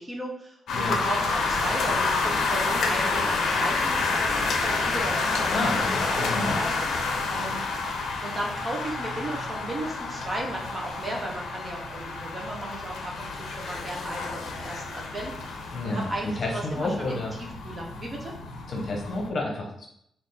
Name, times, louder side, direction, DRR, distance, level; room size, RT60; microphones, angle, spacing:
voice 1, 0.0-5.5 5.9-7.6 8.2-18.3, right 1 dB, 20° right, -1 dB, 0.6 m, -35 dB
sound 1, 0.7-19.3, left 4 dB, 80° left, 0.5 m, -29 dB
voice 2, 5.5-6.6 15.7-17.3 18.7-19.9, left 2 dB, 45° left, 0 dB, 0.8 m, -30 dB
3.3 x 2.4 x 3.8 m, 0.72 s
wide cardioid pair, 145°, 0 cm